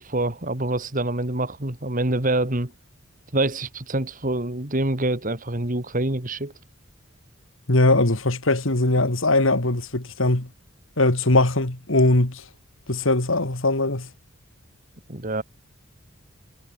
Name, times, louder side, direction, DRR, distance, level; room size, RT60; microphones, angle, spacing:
voice 1, 0.0-2.7 3.3-6.5 15.1-15.4, right 2 dB, 40° right, 2.5 m, -26 dB
voice 2, 7.7-10.5 11.0-12.4 12.9-14.1, left 2 dB, 70° left, 2.5 m, -20 dB
head